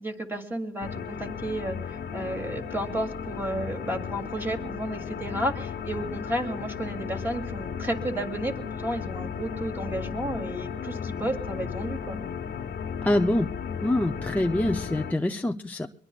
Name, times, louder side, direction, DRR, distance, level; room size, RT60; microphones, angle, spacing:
voice 1, 0.0-12.2, right 1 dB, 10° right, 2 dB, 2.8 m, -32 dB
sound 1, 0.8-15.1, left 7 dB, 55° left, 1.2 m, -35 dB
voice 2, 13.0-13.5 13.8-15.9, left 1 dB, 10° left, 3 dB, 0.6 m, -25 dB
22.5 x 22.0 x 2.4 m, 0.65 s
cardioid pair, 90°, 20 cm